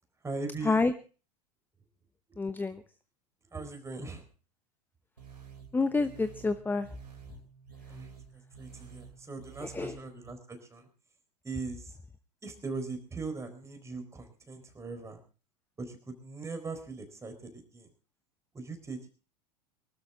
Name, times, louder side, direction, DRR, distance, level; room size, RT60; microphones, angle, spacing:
voice 1, 0.2-0.9 2.7-2.8 3.5-4.2 7.9-8.1 8.6-10.9 11.4-11.9 12.4-15.2 15.8-17.9 18.5-19.1, right 3 dB, 15° right, 6 dB, 4.4 m, -40 dB
voice 2, 2.4-2.8 5.7-6.9 9.6-10.0, left 3 dB, 10° left, 13 dB, 1.0 m, -28 dB
sound 1, 5.2-10.3, right 7 dB, 80° right, 4.0 m, -51 dB
24.0 x 13.0 x 3.7 m, 0.36 s
figure-of-eight pair, 85°, 21 cm